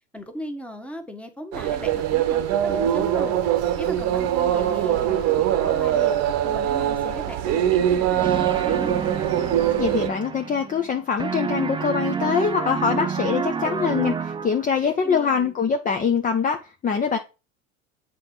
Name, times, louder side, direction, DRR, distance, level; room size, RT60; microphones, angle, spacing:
voice 1, 0.1-3.4 3.7-6.1 6.4-8.9 15.0-15.5, equal, 5° left, 1.3 m, -37 dB
sound 1, 1.5-10.1, right 11 dB, 45° right, 1.0 m, -22 dB
sound 2, 8.2-10.9 11.2-14.8, right 6 dB, 15° right, 0.6 m, -29 dB
voice 2, 9.8-17.2, left 6 dB, 20° left, 0.7 m, -23 dB
7.7 x 4.2 x 4.4 m
hypercardioid pair, 75°, 36 cm